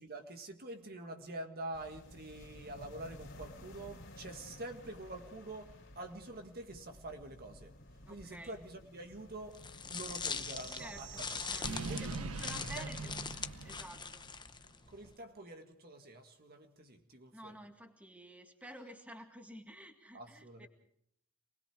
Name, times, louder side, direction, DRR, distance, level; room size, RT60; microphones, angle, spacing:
voice 1, 0.0-7.7 8.1-9.6 9.9-12.0 12.4-12.9 14.9-17.6 20.1-20.7, right 2 dB, 45° right, 1.8 m, -47 dB
sound 1, 1.7-13.9, left 1 dB, 55° left, 3.5 m, -54 dB
voice 2, 8.0-8.6 10.7-13.2 13.6-14.3 17.3-20.7, equal, 5° right, 2.0 m, -51 dB
sound 2, 9.5-15.1, left 6 dB, 20° left, 0.8 m, -42 dB
sound 3, 10.1-14.4, right 3 dB, 75° right, 1.2 m, -43 dB
27.5 x 20.5 x 4.9 m
head